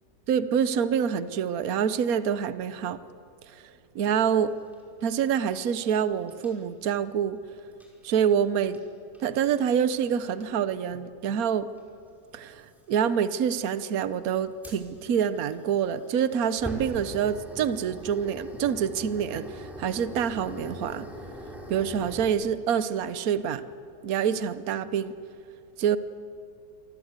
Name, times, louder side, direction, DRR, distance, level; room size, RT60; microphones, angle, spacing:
voice 1, 0.3-3.0 3.5-3.6 3.9-4.5 5.0-7.4 8.0-8.8 9.2-11.7 12.3-21.1 21.7-23.6 24.0-25.1 25.8-26.0, right 8 dB, 60° right, 13 dB, 1.3 m, -26 dB
sound 1, 4.4-6.0 6.3-6.5 7.7-8.2 8.7-8.9 9.1-9.6 9.9-10.0 10.3-10.7 11.8-11.9 12.6-12.8 14.6-22.3, equal, ahead, 5.4 m, -42 dB
29.0 x 24.5 x 8.2 m, 2.5 s
omnidirectional pair, 1.9 m